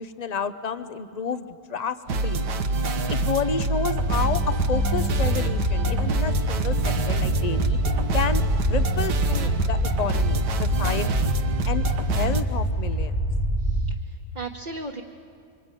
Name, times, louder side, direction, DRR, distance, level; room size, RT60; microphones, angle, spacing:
voice 1, 0.0-2.0 2.2-2.5 3.1-7.8 8.1-11.3 11.6-11.9 12.1-13.1, left 5 dB, 35° left, 11 dB, 0.6 m, -30 dB
sound 1, 2.1-12.4, right 2 dB, 70° right, 1.8 m, -25 dB
sound 2, 3.9-13.9, right 1 dB, 10° left, 1.2 m, -26 dB
sound 3, 5.9-13.8, left 2 dB, 85° left, 7.4 m, -41 dB
voice 2, 13.6-15.0, right 3 dB, 25° right, -2 dB, 1.3 m, -37 dB
26.0 x 24.5 x 9.1 m, 2.3 s
omnidirectional pair, 1.8 m